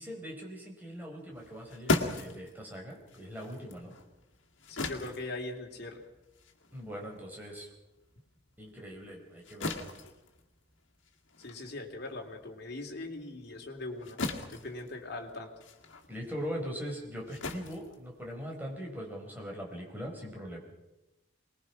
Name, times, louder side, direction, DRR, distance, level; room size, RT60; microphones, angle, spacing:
voice 1, 0.0-3.9 6.7-7.7 8.6-9.9 16.1-20.6, equal, 10° right, -1 dB, 4.6 m, -41 dB
sound 1, 1.3-8.1 8.5-18.7, left 2 dB, 75° left, 2.2 m, -39 dB
voice 2, 4.7-6.0 11.4-14.2 14.5-15.5, left 2 dB, 55° left, 1 dB, 3.1 m, -40 dB
24.0 x 20.5 x 6.0 m, 0.97 s
head